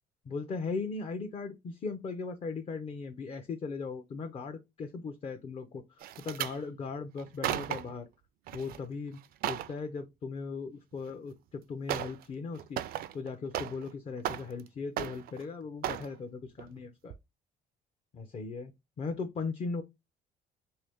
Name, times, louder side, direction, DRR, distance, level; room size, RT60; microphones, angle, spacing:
voice 1, 0.3-8.1 8.5-9.2 9.5-12.8 13.1-17.1 18.1-18.7 19.0-19.8, left 4 dB, 35° left, 0.5 m, -38 dB
sound 1, 6.0-6.6 7.2-8.0 8.5-8.8 9.1-9.7 11.1-11.2 11.9-12.2 12.5-13.9 14.2-14.7 15.0-15.4 15.8-16.1 16.6-16.8 17.1-17.2, right 12 dB, 60° right, 0.4 m, -35 dB
3.0 x 2.7 x 3.4 m
cardioid pair, 110°, 17 cm